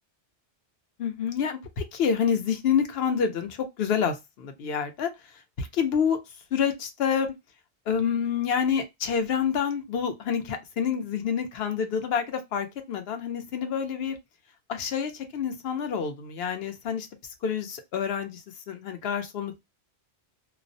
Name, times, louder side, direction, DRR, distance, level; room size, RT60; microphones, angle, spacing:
voice 1, 1.0-6.2 6.5-7.3 7.9-14.2 14.7-17.1 17.4-19.6, left 7 dB, 65° left, 0.8 m, -28 dB
2.4 x 2.1 x 2.5 m
omnidirectional pair, 1.2 m